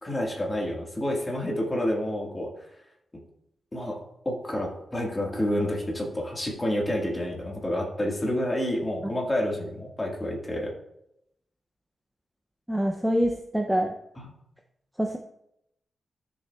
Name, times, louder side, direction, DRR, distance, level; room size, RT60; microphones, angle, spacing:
voice 1, 0.0-2.5 3.7-4.0 4.2-10.7 14.2-14.3, left 1 dB, 15° left, -2 dB, 1.6 m, -29 dB
voice 2, 12.7-14.0 15.0-15.2, equal, 5° right, 3 dB, 0.5 m, -25 dB
12.5 x 6.6 x 2.3 m, 0.81 s
wide cardioid pair, 150°, 0 cm